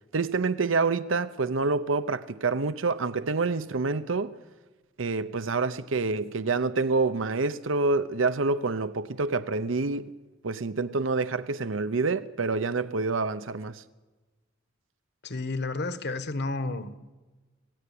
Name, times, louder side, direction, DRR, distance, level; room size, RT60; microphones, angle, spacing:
voice 1, 0.1-4.3 5.0-10.1 10.4-13.8, right 3 dB, 85° right, 0.8 m, -27 dB
voice 2, 15.2-17.0, left 2 dB, 60° left, 1.5 m, -31 dB
25.5 x 18.0 x 8.5 m
head